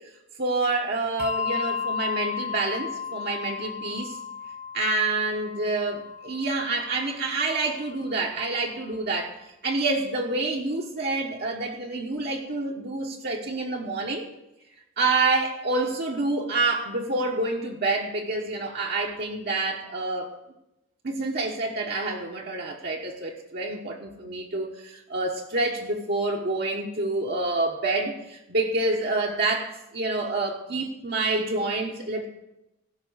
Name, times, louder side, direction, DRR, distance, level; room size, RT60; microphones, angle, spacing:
voice 1, 0.4-4.2 4.7-9.4 9.6-14.3 15.0-20.3 21.0-32.3, right 2 dB, 45° right, -1 dB, 1.1 m, -27 dB
Bell, 1.2-8.1, left 6 dB, 30° left, 0.4 m, -34 dB
15.5 x 6.1 x 6.3 m, 0.91 s
head